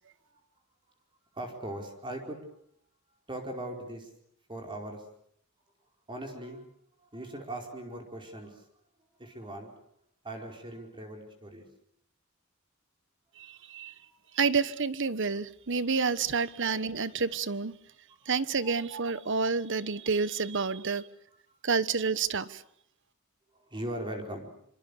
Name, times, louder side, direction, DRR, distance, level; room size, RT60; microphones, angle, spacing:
voice 1, 1.3-2.4 3.3-4.1 4.5-5.0 6.1-6.6 7.0-8.6 9.2-9.7 10.2-11.6 14.1-14.5 18.3-18.8 21.5-21.6 23.6-24.5, right 1 dB, 25° right, 4.7 m, -40 dB
voice 2, 13.4-13.9 14.3-17.8 18.3-21.1 21.6-22.6, right 5 dB, 60° right, 1.2 m, -29 dB
27.5 x 25.5 x 6.8 m
head